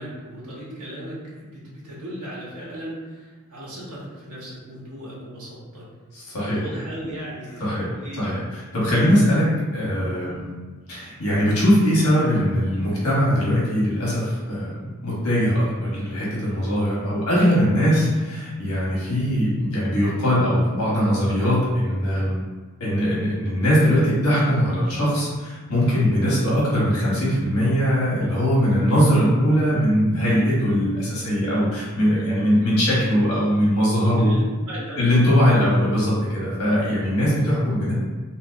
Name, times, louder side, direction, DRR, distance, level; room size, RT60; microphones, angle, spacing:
voice 1, 0.0-5.9 6.4-8.5 8.9-9.1 10.2-10.5 34.2-35.4, right 1 dB, 85° right, -7 dB, 1.0 m, -37 dB
voice 2, 6.1-6.6 7.6-7.9 8.2-9.5 9.7-10.5 10.9-22.4 22.8-34.3 35.0-37.9, equal, 80° left, -7 dB, 1.1 m, -21 dB
3.0 x 2.7 x 2.4 m, 1.3 s
head